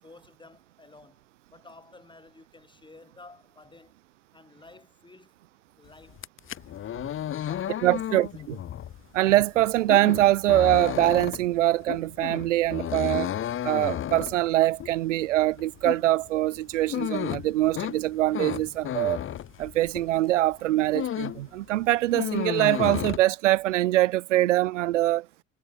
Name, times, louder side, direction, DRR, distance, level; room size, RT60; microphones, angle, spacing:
voice 1, 0.0-4.0 4.3-5.4 5.8-6.3 7.5-8.5, left 3 dB, 10° left, 7.1 m, -52 dB
sound 1, 6.1-20.2 20.5-21.5 21.8-23.2, left 11 dB, 35° left, 1.3 m, -33 dB
voice 2, 7.8-8.6 9.1-13.3 13.6-19.2 19.6-25.3, right 15 dB, 75° right, 0.5 m, -23 dB
figure-of-eight pair, 70°, 37 cm